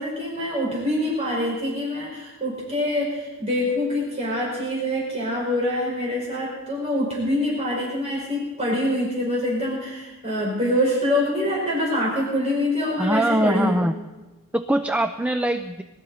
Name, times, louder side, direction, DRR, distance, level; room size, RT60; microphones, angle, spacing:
voice 1, 0.0-13.8, left 1 dB, 30° right, -4 dB, 5.4 m, -25 dB
voice 2, 13.0-13.9 14.5-15.8, right 1 dB, 5° right, 8 dB, 0.4 m, -22 dB
22.5 x 13.0 x 4.3 m, 1.1 s
head